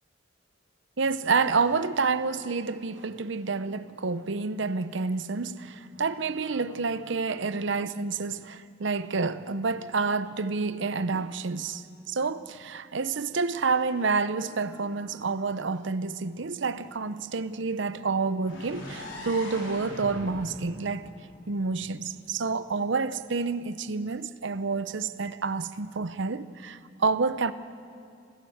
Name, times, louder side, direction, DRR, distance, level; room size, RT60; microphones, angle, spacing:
voice 1, 1.0-21.1 21.5-27.5, right 4 dB, 70° right, 0.8 m, -29 dB
sound 1, 18.5-22.3, left 1 dB, 80° left, 4.1 m, -42 dB
27.0 x 16.0 x 8.0 m
head